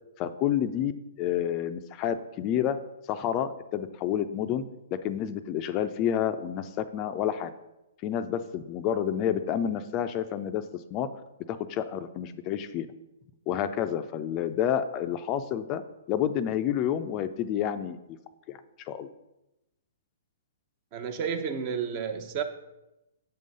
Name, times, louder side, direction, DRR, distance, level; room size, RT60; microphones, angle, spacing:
voice 1, 0.2-0.9 1.2-2.8 3.1-4.6 4.9-7.5 8.0-11.1 11.5-12.9 13.5-15.8 16.1-18.0 18.5-19.1, left 10 dB, 35° left, 11 dB, 0.4 m, -29 dB
voice 2, 20.9-22.4, right 7 dB, 40° right, 8 dB, 0.7 m, -31 dB
7.7 x 3.7 x 5.3 m, 0.94 s
hypercardioid pair, 125°, 0 cm